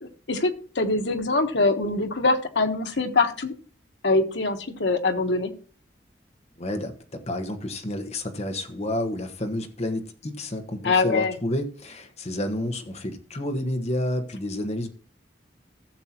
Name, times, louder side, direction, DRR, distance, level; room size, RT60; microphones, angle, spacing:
voice 1, 0.0-3.5 4.0-5.5 10.8-11.3, left 3 dB, 85° left, 1.3 m, -23 dB
voice 2, 6.6-14.9, left 1 dB, 40° left, 1.3 m, -30 dB
15.0 x 7.2 x 3.0 m
head